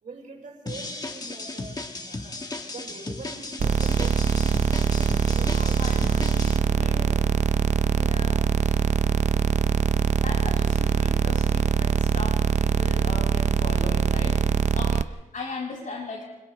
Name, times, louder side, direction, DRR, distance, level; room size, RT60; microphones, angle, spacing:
voice 1, 0.0-7.3, right 3 dB, 80° right, 0 dB, 5.5 m, -44 dB
sound 1, 0.7-6.6, left 2 dB, 30° left, 1.4 m, -35 dB
sound 2, 3.6-15.0, right 7 dB, 60° right, 0.6 m, -23 dB
voice 2, 5.4-7.2 7.9-8.8 10.2-14.4 14.7-16.2, left 3 dB, 75° left, -1 dB, 6.9 m, -38 dB
30.0 x 26.5 x 3.4 m, 1.1 s
wide cardioid pair, 180°, 14 cm